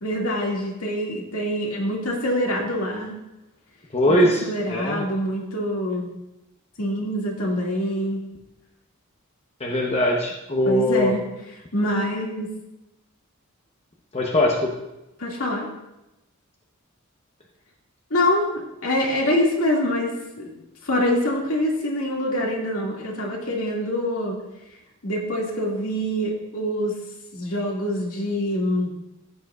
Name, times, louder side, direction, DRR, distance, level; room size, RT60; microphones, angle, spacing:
voice 1, 0.0-3.2 4.1-6.2 6.8-8.2 10.7-11.2 11.7-12.5 15.2-15.7 18.1-20.6 20.8-24.4 25.0-27.0 27.3-28.9, left 1 dB, 80° left, -2 dB, 2.2 m, -25 dB
voice 2, 3.9-5.0 9.6-11.1 14.1-14.7, left 1 dB, 30° left, 0 dB, 0.9 m, -21 dB
14.0 x 8.6 x 2.4 m, 0.94 s
head